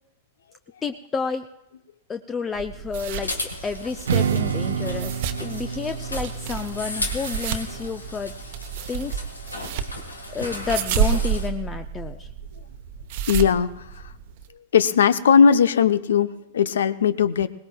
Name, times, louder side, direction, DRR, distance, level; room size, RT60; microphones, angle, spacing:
voice 1, 0.8-1.5 2.1-8.3 8.9-9.2 10.3-12.3, left 5 dB, 20° left, 9 dB, 0.5 m, -30 dB
sound 1, 2.5-14.5, right 8 dB, 55° right, 0.9 m, -31 dB
sound 2, 3.0-11.5, left 2 dB, 85° left, 1.5 m, -36 dB
Strum, 4.1-9.3, right 7 dB, 70° right, 0.5 m, -30 dB
voice 2, 13.3-13.9 14.7-17.5, left 7 dB, 70° left, 15 dB, 0.6 m, -18 dB
22.0 x 18.5 x 2.3 m, 0.85 s
figure-of-eight pair, 100°, 0 cm